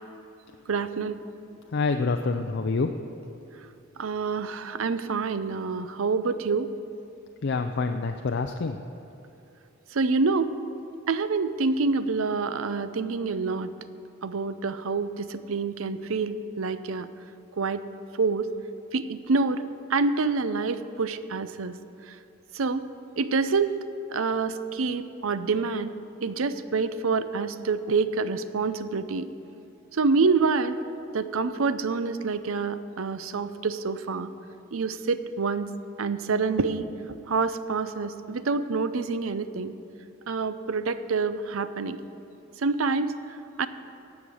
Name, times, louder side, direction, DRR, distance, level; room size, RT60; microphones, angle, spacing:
voice 1, 0.7-1.2 4.0-6.7 9.9-10.5 11.1-13.7 14.2-17.1 17.6-17.8 18.2-18.5 18.9-21.8 22.5-22.9 23.2-23.7 24.1-25.9 26.2-29.3 29.9-30.8 31.1-34.3 34.7-35.7 36.0-36.9 37.3-39.7 40.3-42.0 42.6-43.2 43.6-43.7, right 4 dB, 70° right, 12 dB, 0.6 m, -27 dB
voice 2, 1.7-2.9 7.4-8.8, left 4 dB, 55° left, 5 dB, 0.5 m, -27 dB
17.5 x 7.1 x 6.3 m, 2.8 s
head